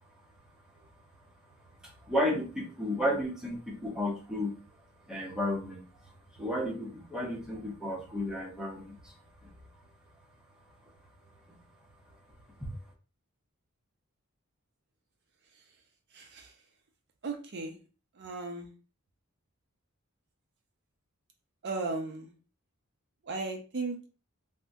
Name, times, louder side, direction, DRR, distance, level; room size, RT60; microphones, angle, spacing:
voice 1, 1.8-4.6 5.1-5.8 6.3-9.1 9.4-9.5 12.6-12.7, left 1 dB, 5° right, -2 dB, 0.6 m, -33 dB
voice 2, 15.5-15.8 16.1-16.6 17.2-17.8 18.1-18.7 21.6-22.3 23.2-24.0, right 3 dB, 50° right, 4 dB, 0.5 m, -36 dB
3.5 x 2.1 x 2.5 m, 0.34 s
head